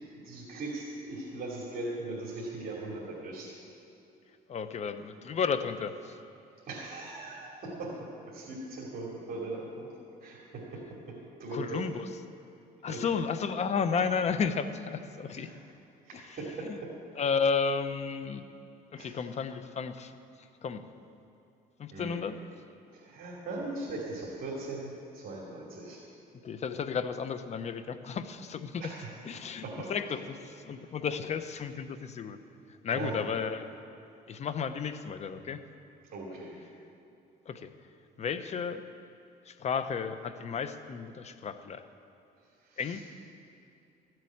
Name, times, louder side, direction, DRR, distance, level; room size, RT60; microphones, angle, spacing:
voice 1, 0.1-3.5 6.7-8.0 8.3-9.9 10.2-11.1 11.4-11.8 12.9-13.0 15.3-15.6 16.0-16.9 19.0-19.2 21.9-22.3 22.9-26.0 28.8-30.1 30.7-30.9 32.9-33.3 36.1-36.6 42.6-43.0, right 2 dB, 55° right, -5 dB, 2.7 m, -40 dB
voice 2, 4.5-6.2 11.5-12.1 12.8-15.5 17.2-18.4 18.9-20.1 20.6-20.8 21.8-22.4 26.4-28.8 29.3-29.6 29.9-32.4 32.8-33.7 34.3-35.6 37.5-37.7 38.2-38.8 39.5-41.8 42.8-43.0, left 6 dB, 40° left, 10 dB, 0.8 m, -32 dB
14.5 x 7.9 x 8.6 m, 2.7 s
cardioid pair, 110°, 17 cm